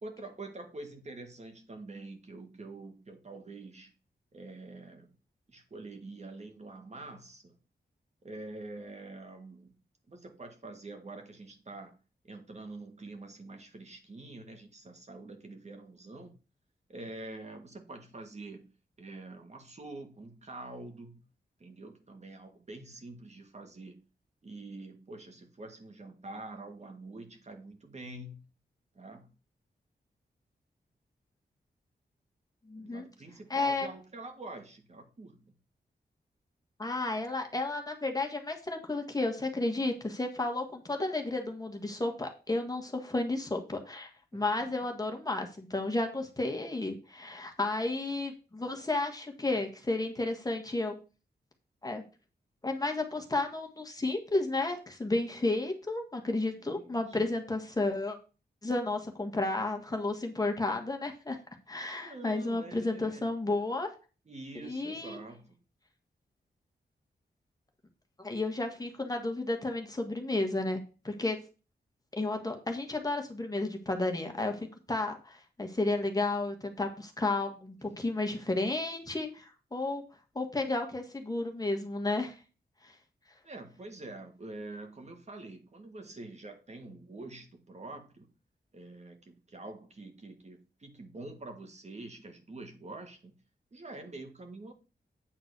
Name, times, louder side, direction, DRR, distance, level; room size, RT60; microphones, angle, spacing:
voice 1, 0.0-3.9 4.3-5.1 5.5-7.5 8.2-9.7 10.1-11.9 12.2-16.4 16.9-18.7 19.0-21.2 21.6-24.0 24.4-28.5 29.0-29.3 32.8-35.5 44.3-44.7 56.6-57.2 62.0-63.3 64.3-65.6 77.8-78.0 83.4-88.3 88.7-93.3 93.7-94.7, right 2 dB, 40° right, 5 dB, 1.8 m, -46 dB
voice 2, 32.7-33.0 33.5-33.9 36.8-50.9 51.8-52.0 52.6-58.2 58.6-61.4 61.7-63.9 64.6-65.2 68.2-71.4 72.2-80.0 80.3-82.3, left 2 dB, 20° left, 3 dB, 1.6 m, -32 dB
8.9 x 4.0 x 6.7 m, 0.33 s
wide cardioid pair, 95°, 17 cm